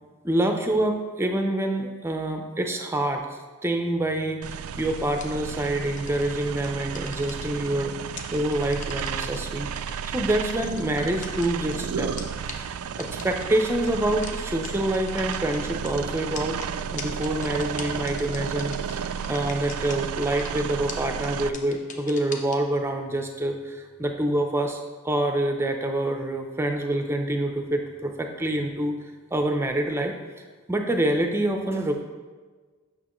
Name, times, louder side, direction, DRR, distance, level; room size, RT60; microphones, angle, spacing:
voice 1, 0.2-3.3 3.6-9.7 10.1-12.1 12.5-12.7 13.0-16.6 16.9-28.9 29.3-30.2 30.7-32.0, right 1 dB, 10° right, 4 dB, 0.5 m, -26 dB
sound 1, 4.4-21.5, right 7 dB, 80° right, 0.3 m, -33 dB
sound 2, 5.1-5.5 6.0-6.2 6.6-7.8 8.2-9.4 9.7-11.7 12.2-12.3 12.5-12.6 13.0-13.4 13.8-13.9 14.2-14.3 14.6-14.7 14.9-15.9 16.4-20.0 20.2-20.6 20.9-21.0 21.2-21.3 21.5-22.6, left 5 dB, 35° left, 0.7 m, -39 dB
8.6 x 6.3 x 3.0 m, 1.4 s
head